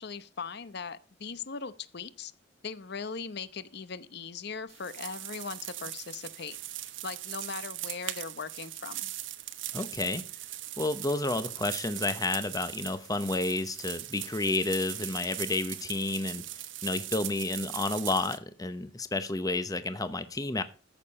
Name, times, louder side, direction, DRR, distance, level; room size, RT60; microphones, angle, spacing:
voice 1, 0.0-2.3 2.6-6.6 7.0-9.1, left 5 dB, 55° left, 0.8 m, -39 dB
sound 1, 4.7-18.4, right 14 dB, 75° right, 1.1 m, -40 dB
voice 2, 9.7-10.2 10.8-16.4 16.8-20.6, left 2 dB, 20° left, 0.8 m, -30 dB
14.5 x 6.6 x 5.3 m
head